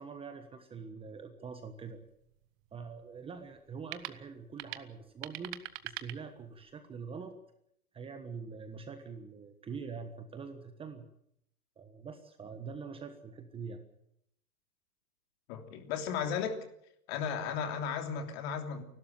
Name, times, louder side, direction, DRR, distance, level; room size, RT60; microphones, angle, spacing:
voice 1, 0.0-2.0 2.7-5.6 5.8-7.3 7.9-11.1 11.8-13.8, right 5 dB, 10° right, 7 dB, 1.3 m, -44 dB
sound 1, 1.4-6.8, right 17 dB, 30° right, 1.0 m, -46 dB
voice 2, 15.5-16.6 17.1-18.8, left 7 dB, 45° left, 6 dB, 3.3 m, -35 dB
29.5 x 12.5 x 9.0 m, 0.74 s
hypercardioid pair, 145°, 43 cm